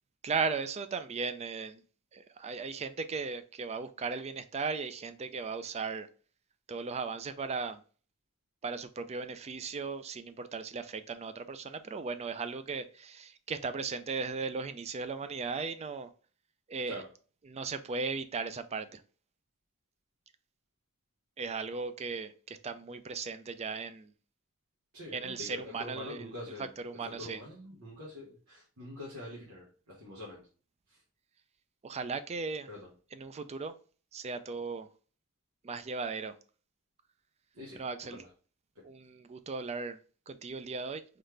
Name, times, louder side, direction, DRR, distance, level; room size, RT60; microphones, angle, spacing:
voice 1, 0.2-1.8 2.1-6.1 6.7-7.8 8.6-16.1 16.7-17.0 17.4-19.0 21.4-24.1 25.1-26.3 26.6-27.4 31.8-32.7 33.1-33.7 34.1-34.9 35.6-36.4 37.7-38.2 38.8-41.2, right 4 dB, 30° right, 0.4 m, -37 dB
voice 2, 24.9-26.7 27.0-30.4 30.9-31.0 32.7-32.9 37.5-38.3 38.7-38.9, left 1 dB, 85° right, 1.3 m, -45 dB
4.0 x 3.2 x 3.2 m
head